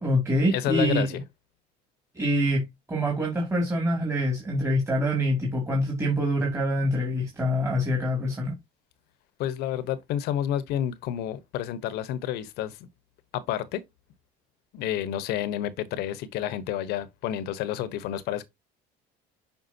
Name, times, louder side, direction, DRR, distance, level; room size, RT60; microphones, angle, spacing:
voice 1, 0.0-1.2 2.1-2.6 2.9-8.5, equal, 15° right, 2.7 m, -25 dB
voice 2, 0.5-1.1 9.4-12.8 13.3-13.8 14.7-18.4, left 11 dB, 70° left, 1.1 m, -29 dB
7.9 x 5.2 x 2.8 m
cardioid pair, 120°, 17 cm